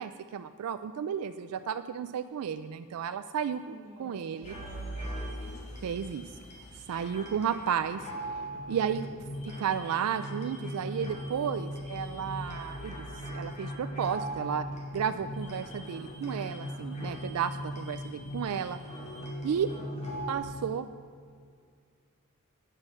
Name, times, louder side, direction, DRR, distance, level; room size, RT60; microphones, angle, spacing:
voice 1, 0.0-3.6 4.0-4.5 5.8-6.3 6.8-8.0 8.7-9.1 9.6-13.1 13.3-14.7 14.9-18.8 19.4-19.7 20.3-20.9, right 8 dB, 85° right, 11 dB, 0.3 m, -33 dB
voice 2, 3.6-5.7 8.8-9.5 19.4-20.4, right 1 dB, 30° right, -3 dB, 3.2 m, -52 dB
sound 1, 4.4-20.4, equal, 30° left, 1.9 m, -39 dB
9.3 x 6.3 x 7.6 m, 2.1 s
head